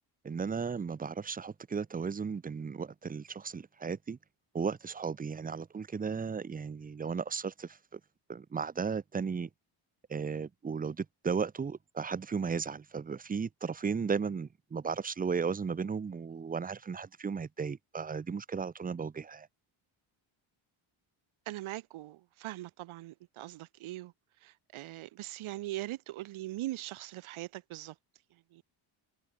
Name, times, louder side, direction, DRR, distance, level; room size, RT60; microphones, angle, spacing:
voice 1, 0.2-4.2 4.5-8.0 8.3-9.5 10.1-19.5, right 5 dB, 20° right, 0.9 m, -35 dB
voice 2, 21.5-24.1 24.4-27.9 28.5-28.6, right 16 dB, 90° right, 3.1 m, -41 dB
cardioid pair, 170°, 47 cm